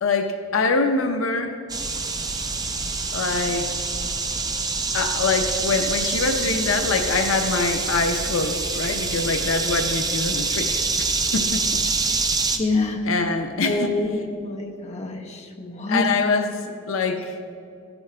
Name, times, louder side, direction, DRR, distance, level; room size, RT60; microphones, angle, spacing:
voice 1, 0.0-1.5 3.1-3.7 4.9-11.1 11.3-11.6 13.0-14.1 15.9-17.4, left 4 dB, 75° left, 6 dB, 0.6 m, -24 dB
sound 1, 1.7-12.6, right 4 dB, 20° right, 0.7 m, -26 dB
voice 2, 12.6-13.0 13.6-16.0, left 2 dB, 35° left, 2 dB, 0.9 m, -26 dB
15.0 x 8.3 x 3.3 m, 2.6 s
head